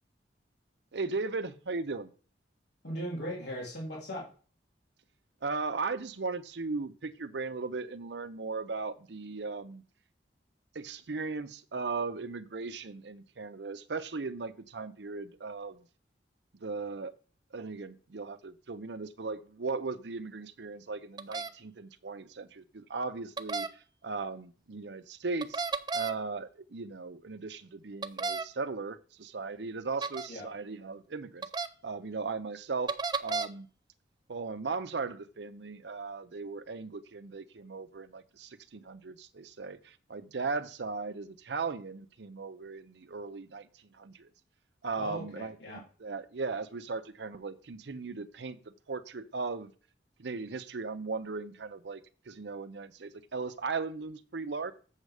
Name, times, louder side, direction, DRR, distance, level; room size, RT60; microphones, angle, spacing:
voice 1, 0.9-2.1 5.4-9.8 10.7-15.9 16.6-17.1 17.5-23.7 24.0-25.6 25.9-31.5 31.8-32.9 33.2-33.7 34.3-44.3 44.8-49.7 50.2-54.7, right 4 dB, 70° right, 0.7 m, -37 dB
voice 2, 2.8-4.3 30.3-30.4 45.0-45.8, equal, 70° left, 3.1 m, -38 dB
sound 1, 21.2-21.5 23.4-23.7 25.4-26.1 28.0-28.4 30.0-30.3 31.4-31.7 32.9-33.5, right 4 dB, 25° right, 0.4 m, -32 dB
7.2 x 6.6 x 4.9 m
head